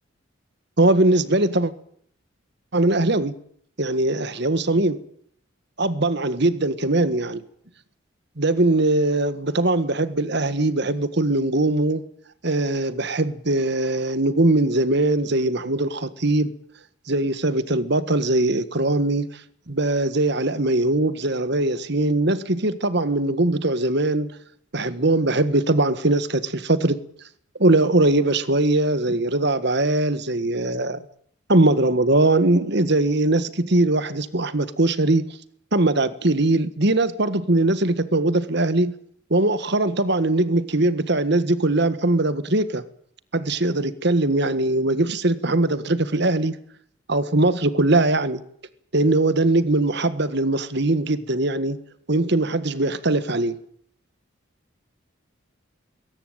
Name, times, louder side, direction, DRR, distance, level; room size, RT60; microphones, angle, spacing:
voice 1, 0.8-1.7 2.7-3.3 3.8-5.0 5.8-7.4 8.4-12.0 12.4-16.5 17.1-19.3 19.7-24.3 24.7-27.0 27.6-31.0 31.5-35.3 35.7-38.9 39.3-42.8 43.3-46.5 47.1-48.4 48.9-51.8 52.1-53.6, right 2 dB, 55° right, 1.7 m, -21 dB
21.0 x 18.5 x 9.1 m
head